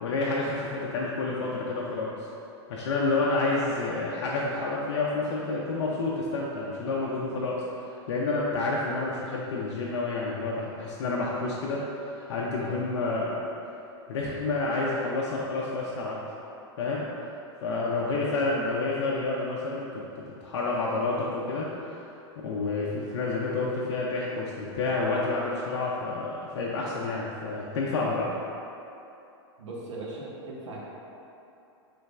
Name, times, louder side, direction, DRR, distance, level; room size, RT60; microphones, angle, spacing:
voice 1, 0.0-2.1 2.7-7.6 8.1-13.4 14.1-16.2 16.8-17.1 17.6-22.0 22.4-28.3, left 3 dB, 70° left, -4 dB, 0.5 m, -29 dB
voice 2, 29.6-30.8, right 2 dB, 90° right, -4 dB, 0.9 m, -39 dB
5.1 x 3.3 x 2.4 m, 2.8 s
hypercardioid pair, 125°, 15 cm